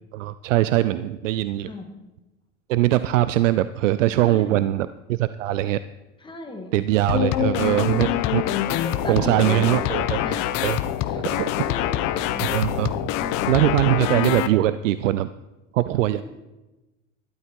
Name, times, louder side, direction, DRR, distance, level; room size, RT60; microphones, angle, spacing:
voice 1, 0.1-1.7 2.7-5.8 6.7-8.4 9.1-10.2 10.6-10.8 11.2-11.5 12.4-12.9 13.5-15.3 15.7-16.2, right 14 dB, 85° right, 14 dB, 0.5 m, -22 dB
voice 2, 4.2-4.6 6.2-6.7 7.7-8.2 8.7-9.9 10.2-10.6 11.0-11.3 11.6-12.5 13.2-13.4 16.1-16.2, left 2 dB, 15° left, 3 dB, 2.0 m, -36 dB
sound 1, 7.1-14.5, left 12 dB, 55° left, 0.9 m, -25 dB
12.5 x 11.5 x 4.6 m, 1.1 s
hypercardioid pair, 105°, 37 cm